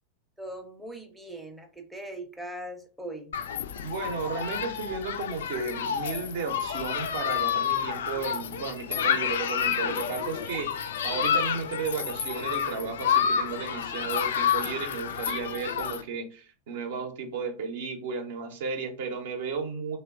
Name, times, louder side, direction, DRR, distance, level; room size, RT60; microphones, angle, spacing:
voice 1, 0.4-3.3, right 1 dB, 5° right, 3 dB, 0.5 m, -40 dB
Human group actions, 3.3-16.0, left 8 dB, 60° left, 0.3 m, -29 dB
voice 2, 3.8-20.0, right 4 dB, 55° right, 5 dB, 0.6 m, -34 dB
2.9 x 2.2 x 3.5 m, 0.38 s
figure-of-eight pair, 90°, 0 cm